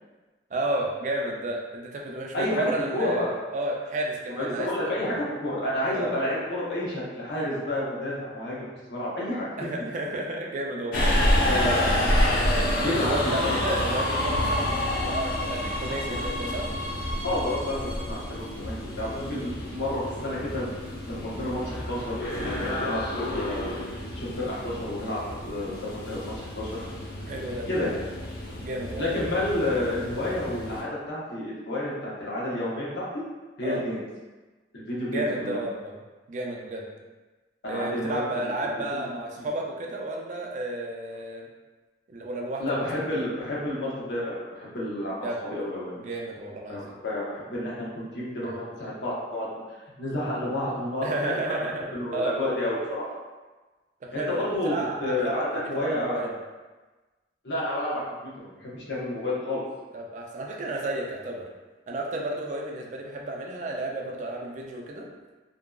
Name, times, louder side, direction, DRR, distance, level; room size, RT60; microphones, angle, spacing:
voice 1, 0.5-3.3 3.5-5.2 5.9-6.1 9.6-11.8 12.9-16.7 27.3-27.7 28.6-29.2 33.6-33.8 35.1-35.9 36.3-36.9 37.7-41.5 42.1-42.6 42.9-43.2 45.2-45.4 46.0-47.0 48.4-48.6 51.0-51.9 52.1-52.4 54.0-56.3 59.9-61.5 61.9-65.1, right 1 dB, 45° right, 0 dB, 0.3 m, -32 dB
voice 2, 2.9-3.3 4.4-9.7 11.4-11.8 12.8-13.7 17.2-20.7 21.0-23.8 24.1-26.8 27.7-27.9 28.9-33.2 33.6-34.0 34.7-35.6 37.6-38.5 38.9-39.0 39.4-39.5 42.6-46.0 46.7-49.5 50.0-51.7 51.9-53.1 54.1-56.3 57.4-59.6, left 1 dB, 85° left, -6 dB, 0.8 m, -30 dB
Subway metro underground, 10.9-30.8, left 1 dB, 55° left, 0.4 m, -29 dB
2.6 x 2.2 x 2.2 m, 1.2 s
head